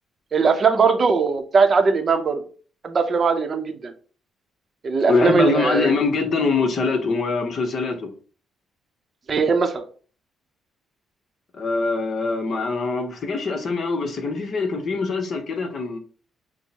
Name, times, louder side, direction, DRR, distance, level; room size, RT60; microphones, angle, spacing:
voice 1, 0.3-2.4 2.8-3.9 4.8-5.9 9.3-9.8, right 5 dB, 40° right, 0.6 m, -19 dB
voice 2, 5.1-8.0 11.5-16.0, left 4 dB, 50° left, 0.9 m, -23 dB
6.2 x 2.1 x 2.8 m
cardioid pair, 90°, 0 cm